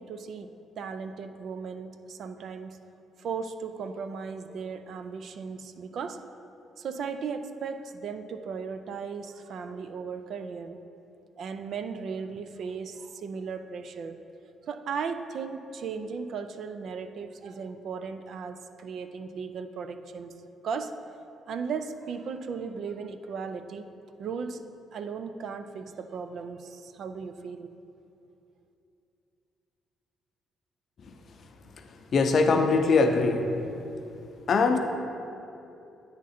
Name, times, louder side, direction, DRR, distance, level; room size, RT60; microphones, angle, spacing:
voice 1, 0.0-2.9 3.2-6.2 6.8-10.8 11.4-14.2 14.6-20.3 20.6-21.0 21.5-23.9 24.2-24.6 24.9-27.7, right 5 dB, 65° right, 9 dB, 0.3 m, -36 dB
voice 2, 31.8-33.5 34.5-34.8, left 4 dB, 55° left, 5 dB, 0.5 m, -22 dB
8.5 x 3.7 x 4.2 m, 2.8 s
cardioid pair, 95°, 0 cm